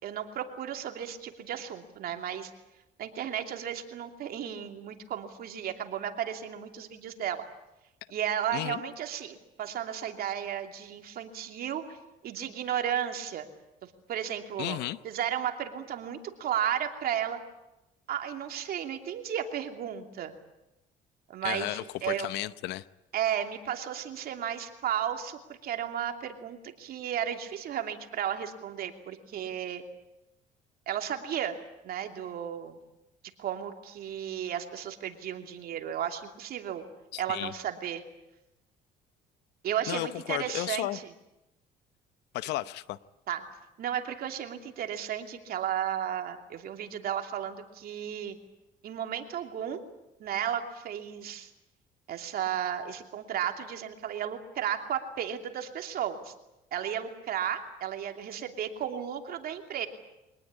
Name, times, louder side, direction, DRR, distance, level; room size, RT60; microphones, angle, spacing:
voice 1, 0.0-2.5 3.0-7.4 8.1-12.0 12.2-13.5 13.8-14.8 15.0-17.4 18.1-20.3 21.3-22.3 23.1-29.8 30.9-31.6 31.8-32.8 33.4-36.8 37.2-38.0 39.6-41.0 43.3-43.4 43.8-48.4 48.8-49.8 50.2-51.5 52.1-56.3 56.7-59.9, right 9 dB, 65° right, 2.9 m, -34 dB
voice 2, 14.6-15.0 21.4-22.9 37.1-37.5 39.9-41.0 42.3-43.0, left 16 dB, 85° left, 0.8 m, -33 dB
24.0 x 19.0 x 9.9 m
cardioid pair, 110°, 17 cm